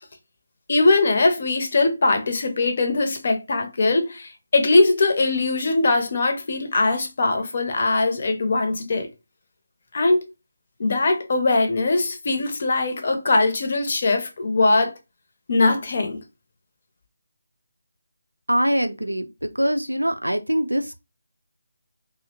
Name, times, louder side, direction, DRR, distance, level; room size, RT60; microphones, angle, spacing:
voice 1, 0.7-9.1 9.9-10.2 10.8-14.9 15.5-16.2, left 2 dB, 40° left, 0.6 m, -21 dB
voice 2, 18.5-21.0, equal, 90° right, 0.4 m, -23 dB
2.6 x 2.0 x 2.7 m
figure-of-eight pair, 155°, 0 cm